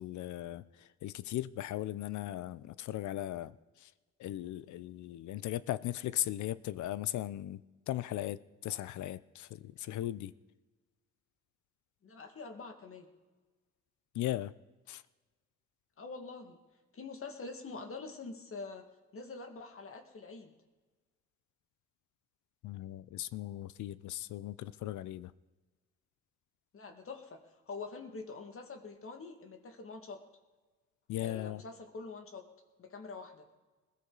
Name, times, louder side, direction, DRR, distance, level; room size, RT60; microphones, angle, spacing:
voice 1, 0.0-3.9 4.2-7.6 7.9-10.3 14.1-14.5 14.9-15.0 22.6-25.3 31.1-31.6, left 14 dB, 70° left, 0.6 m, -38 dB
voice 2, 12.0-13.1 16.0-16.6 16.9-18.9 19.1-20.5 26.7-30.2 31.2-32.4 32.8-33.5, left 4 dB, 45° left, 2.1 m, -45 dB
20.5 x 13.5 x 4.0 m
cardioid pair, 90°, 30 cm